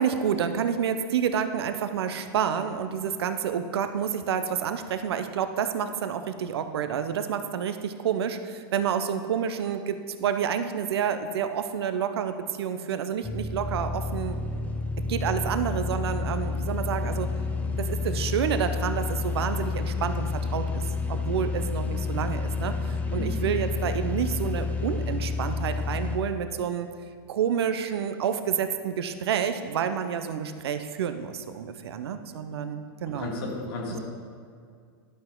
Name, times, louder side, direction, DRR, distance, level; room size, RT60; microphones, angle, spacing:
voice 1, 0.0-14.4 15.1-17.3 17.8-20.8 21.1-26.9 27.3-33.3, right 8 dB, 85° right, 9 dB, 0.6 m, -29 dB
sound 1, 13.2-26.2, left 4 dB, 10° left, 0.6 m, -30 dB
voice 2, 23.1-23.6 33.1-34.0, left 2 dB, 70° left, -1 dB, 2.0 m, -34 dB
11.5 x 5.9 x 3.7 m, 2.2 s
supercardioid pair, 130°, 13 cm